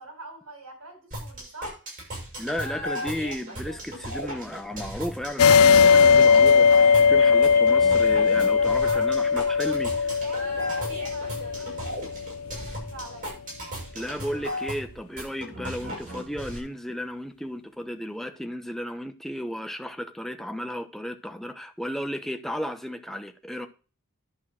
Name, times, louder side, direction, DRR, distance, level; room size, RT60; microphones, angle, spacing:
voice 1, 0.0-1.8 8.6-13.4, right 2 dB, 70° right, 5.0 m, -45 dB
sound 1, 1.1-16.6, equal, 35° right, 6.5 m, -36 dB
voice 2, 2.4-9.9 13.9-23.7, equal, ahead, 0.9 m, -34 dB
sound 2, 5.4-12.5, left 6 dB, 70° left, 0.4 m, -19 dB
11.0 x 4.5 x 7.5 m
head